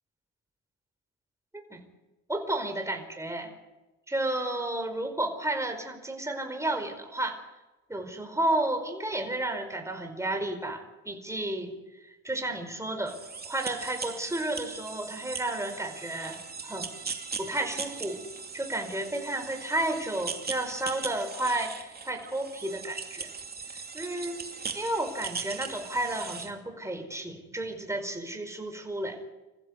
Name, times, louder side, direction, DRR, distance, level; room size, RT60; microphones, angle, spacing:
voice 1, 2.3-3.5 4.1-7.4 7.9-11.8 12.0-13.2 13.4-16.9 17.4-18.2 18.5-23.3 23.9-24.4 24.7-29.2, right 1 dB, 10° right, 5 dB, 4.8 m, -32 dB
sound 1, 13.1-26.5, right 5 dB, 30° right, 2.6 m, -39 dB
26.5 x 15.0 x 8.2 m, 1.1 s
cardioid pair, 90°, 30 cm